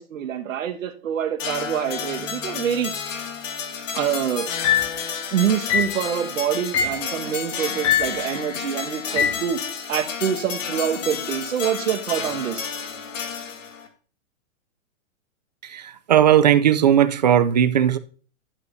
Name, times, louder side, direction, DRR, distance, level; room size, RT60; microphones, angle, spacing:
voice 1, 0.0-2.9 3.9-4.5 5.3-9.6 9.9-12.7, right 9 dB, 75° right, 1.5 m, -26 dB
sound 1, 1.4-13.9, left 7 dB, 70° left, 1.9 m, -31 dB
sound 2, 4.6-5.0 5.7-6.0 6.7-7.1 7.8-8.2 9.2-9.5, left 9 dB, 25° left, 0.5 m, -22 dB
voice 2, 16.1-18.0, right 10 dB, 35° right, 0.4 m, -17 dB
11.0 x 9.7 x 2.6 m
hypercardioid pair, 165°, 39 cm